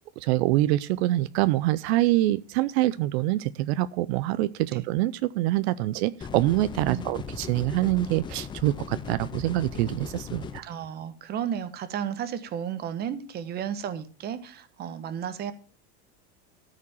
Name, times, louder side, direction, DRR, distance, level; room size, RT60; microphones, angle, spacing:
voice 1, 0.2-10.7, right 16 dB, 70° right, 15 dB, 0.6 m, -25 dB
sound 1, 6.2-10.6, left 6 dB, 15° left, 0.4 m, -38 dB
voice 2, 10.6-15.5, right 9 dB, 30° right, 12 dB, 1.1 m, -33 dB
13.5 x 5.1 x 6.9 m, 0.39 s
supercardioid pair, 155°, 33 cm